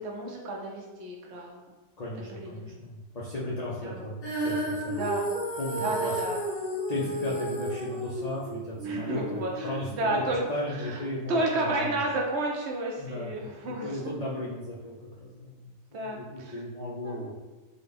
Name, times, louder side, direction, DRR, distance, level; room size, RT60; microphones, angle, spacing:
voice 1, 0.0-1.6 2.4-2.8 3.8-4.0 5.0-5.3 5.8-6.4 8.8-10.4 10.8-11.0 11.3-13.9 15.9-16.6 17.0-17.3, right 2 dB, 65° right, 0 dB, 0.8 m, -31 dB
voice 2, 2.0-5.1 5.6-6.2 6.9-12.0 13.0-17.4, left 1 dB, 85° left, -6 dB, 0.3 m, -36 dB
Female singing, 4.2-10.4, right 1 dB, 50° left, 1.0 m, -33 dB
3.8 x 2.1 x 3.3 m, 1.2 s
omnidirectional pair, 1.4 m